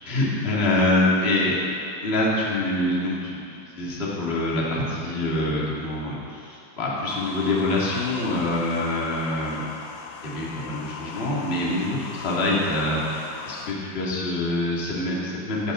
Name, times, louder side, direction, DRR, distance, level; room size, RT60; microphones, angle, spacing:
voice 1, 0.0-1.6 2.0-3.4 3.7-9.7 10.2-13.2 13.5-15.7, left 2 dB, 20° left, -5 dB, 1.8 m, -25 dB
sound 1, 7.1-13.7, left 6 dB, 80° left, 2.5 m, -39 dB
17.5 x 11.5 x 3.9 m, 2.7 s
omnidirectional pair, 4.2 m